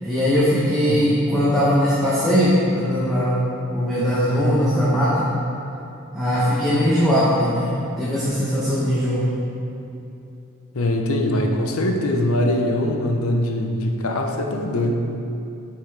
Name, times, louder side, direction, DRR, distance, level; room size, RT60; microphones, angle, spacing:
voice 1, 0.0-3.4 3.7-5.2 6.1-7.7 8.0-9.2, equal, ahead, -11 dB, 1.0 m, -20 dB
voice 2, 0.8-1.2 10.7-15.1, left 1 dB, 80° left, 2 dB, 0.7 m, -22 dB
8.8 x 5.6 x 3.4 m, 2.8 s
head